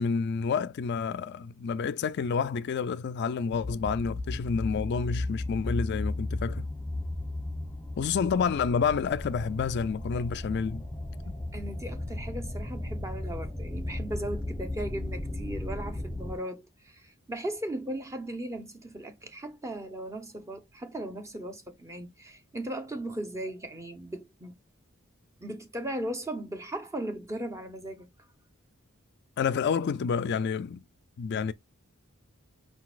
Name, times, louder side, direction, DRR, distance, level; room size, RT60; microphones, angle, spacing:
voice 1, 0.0-6.7 8.0-10.8 29.4-30.8 31.2-31.5, left 6 dB, 50° left, 0.3 m, -29 dB
sound 1, 3.5-16.4, left 1 dB, 10° left, 1.0 m, -35 dB
voice 2, 11.5-24.6 25.4-28.3, right 1 dB, 15° right, 0.8 m, -37 dB
5.0 x 3.9 x 2.4 m
head